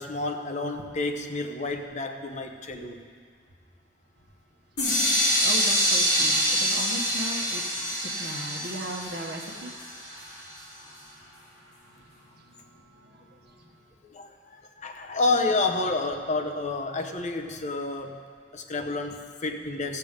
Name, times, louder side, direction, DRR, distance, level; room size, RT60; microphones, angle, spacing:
voice 1, 0.0-3.0 14.1-14.3 14.8-18.2 18.5-20.0, left 3 dB, 40° left, 5 dB, 0.8 m, -29 dB
sound 1, 4.8-10.6, equal, 65° left, 3.2 m, -26 dB
voice 2, 5.4-7.6 8.2-9.7 13.0-13.2, right 1 dB, 55° right, 1 dB, 1.2 m, -37 dB
15.0 x 6.9 x 5.1 m, 2.1 s
head